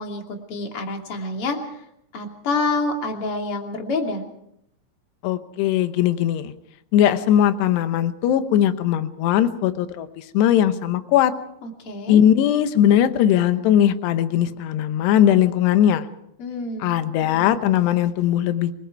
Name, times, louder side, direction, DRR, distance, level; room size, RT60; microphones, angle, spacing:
voice 1, 0.0-1.8 2.1-4.2 11.6-12.2 16.4-16.9, left 3 dB, 35° left, 2 dB, 2.7 m, -27 dB
voice 2, 5.2-6.5 6.9-11.3 12.1-16.1 16.8-18.7, left 10 dB, 70° left, 10 dB, 2.8 m, -19 dB
27.5 x 20.0 x 4.7 m, 0.76 s
omnidirectional pair, 5.8 m